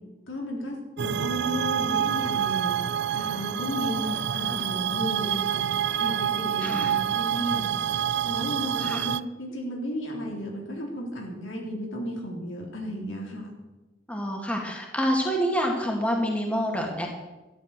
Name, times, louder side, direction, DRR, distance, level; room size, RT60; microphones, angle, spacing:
voice 1, 0.3-2.8 3.1-5.7 6.0-7.7 8.2-13.5, equal, 85° left, -1 dB, 3.9 m, -34 dB
sound 1, 1.0-9.2, right 9 dB, 60° right, 0.4 m, -27 dB
voice 2, 6.6-6.9 8.8-9.0 14.1-17.1, equal, 5° left, 0 dB, 2.1 m, -27 dB
13.0 x 10.5 x 6.7 m, 1.1 s
head